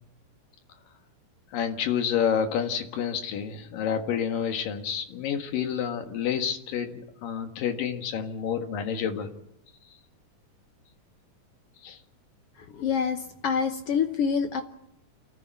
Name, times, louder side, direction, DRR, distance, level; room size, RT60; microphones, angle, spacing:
voice 1, 1.5-9.3 11.8-12.0, left 8 dB, 90° left, 6 dB, 3.4 m, -29 dB
voice 2, 12.7-13.2 13.4-14.6, left 6 dB, 70° left, 7 dB, 1.4 m, -26 dB
27.5 x 14.5 x 8.2 m, 0.82 s
omnidirectional pair, 3.8 m